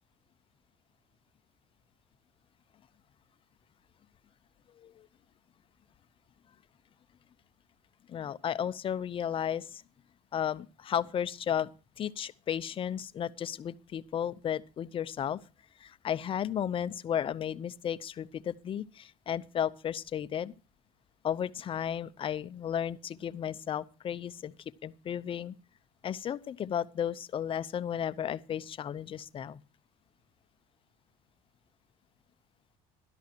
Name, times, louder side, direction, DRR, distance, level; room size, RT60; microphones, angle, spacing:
voice 1, 8.1-9.8 10.3-11.7 12.0-15.4 15.8-20.5 21.2-24.5 24.8-25.5 26.0-29.6, left 9 dB, 35° left, 0.6 m, -34 dB
16.5 x 12.0 x 2.9 m
cardioid pair, 130°, 16 cm